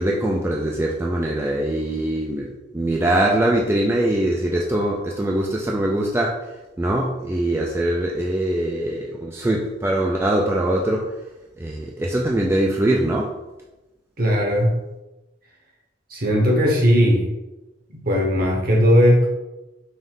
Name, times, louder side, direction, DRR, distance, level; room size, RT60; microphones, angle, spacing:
voice 1, 0.0-6.4 6.8-11.1 11.6-13.3, right 1 dB, 15° right, -1 dB, 0.3 m, -22 dB
voice 2, 14.2-14.7 16.1-17.3 18.1-19.3, equal, 55° right, -1 dB, 1.1 m, -17 dB
5.3 x 2.6 x 3.7 m, 1.0 s
head